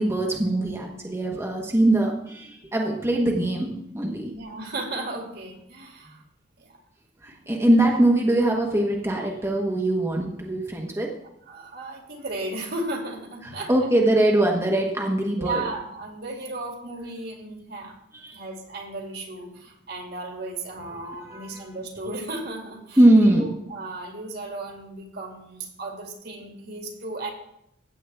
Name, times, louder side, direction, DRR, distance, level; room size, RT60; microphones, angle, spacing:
voice 1, 0.0-3.7 3.9-4.3 7.2-11.1 13.7-15.6 18.1-18.4 21.0-21.6 23.0-23.4, right 1 dB, 15° right, 0 dB, 1.2 m, -22 dB
voice 2, 4.2-6.2 6.6-6.8 7.4-7.8 11.5-13.9 15.4-18.0 18.3-27.3, right 2 dB, 60° right, 1 dB, 2.5 m, -35 dB
15.5 x 8.5 x 3.5 m, 0.79 s
head